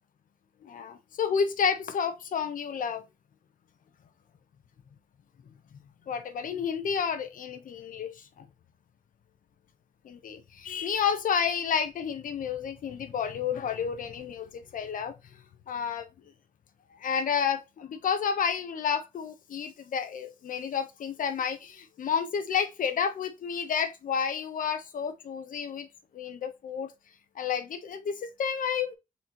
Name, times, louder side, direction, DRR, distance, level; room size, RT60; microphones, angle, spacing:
voice 1, 0.6-3.0 6.1-8.5 10.0-15.1 15.7-16.1 17.0-25.9 26.1-26.9 27.4-28.9, left 7 dB, 85° left, 0.8 m, -30 dB
4.3 x 4.2 x 3.0 m
wide cardioid pair, 110°, 14 cm